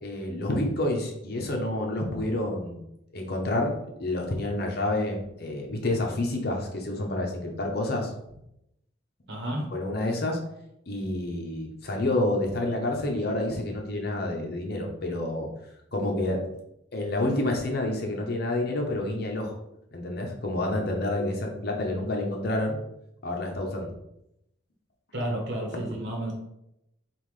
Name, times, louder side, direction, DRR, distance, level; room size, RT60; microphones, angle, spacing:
voice 1, 0.0-2.8 3.1-3.7 4.0-8.1 9.7-10.4 10.9-15.5 15.9-16.4 16.9-19.6 19.9-22.8 23.2-23.9, left 1 dB, 50° left, 1 dB, 0.8 m, -28 dB
voice 2, 9.3-9.7 25.1-26.3, right 1 dB, 60° right, 0 dB, 1.1 m, -31 dB
5.5 x 2.5 x 3.2 m, 0.81 s
head